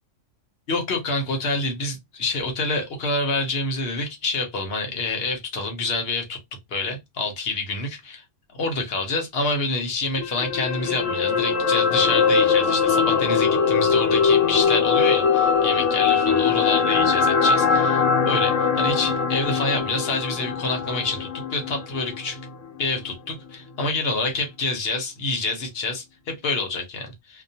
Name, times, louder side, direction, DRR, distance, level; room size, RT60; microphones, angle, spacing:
voice 1, 0.7-6.4 6.7-8.2 8.5-22.4 22.8-27.1, left 3 dB, 60° left, 0.9 m, -27 dB
sound 1, 10.2-22.5 22.8-23.0, left 6 dB, 85° left, 1.0 m, -21 dB
2.3 x 2.2 x 2.6 m
omnidirectional pair, 1.3 m